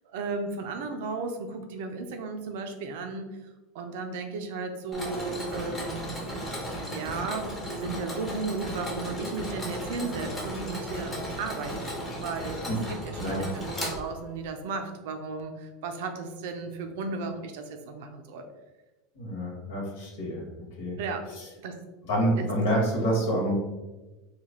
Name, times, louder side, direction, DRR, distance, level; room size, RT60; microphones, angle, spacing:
voice 1, 0.1-3.3 3.7-6.1 6.9-12.6 13.0-18.4 21.0-21.3 21.6-21.8 22.4-22.5, right 4 dB, 75° right, 6 dB, 0.5 m, -35 dB
Mechanisms, 4.9-14.5, equal, 10° left, 0.8 m, -35 dB
voice 2, 13.2-13.5 19.1-21.0 21.3-21.5 22.0-23.5, right 1 dB, 75° left, -2 dB, 1.3 m, -28 dB
3.3 x 2.4 x 3.6 m, 1.1 s
supercardioid pair, 150°, 0 cm